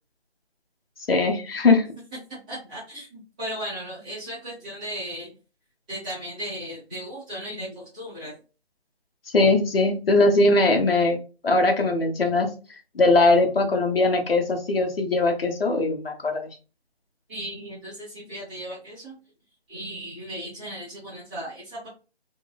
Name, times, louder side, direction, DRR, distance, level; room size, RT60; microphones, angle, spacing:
voice 1, 1.1-1.9 9.3-11.2 11.4-12.5 12.9-16.5, left 2 dB, 65° left, 3 dB, 0.9 m, -20 dB
voice 2, 2.5-5.3 5.9-8.3 17.3-19.2 19.7-21.9, equal, 5° right, -11 dB, 0.8 m, -36 dB
3.0 x 2.2 x 2.3 m, 0.33 s
figure-of-eight pair, 160°, 32 cm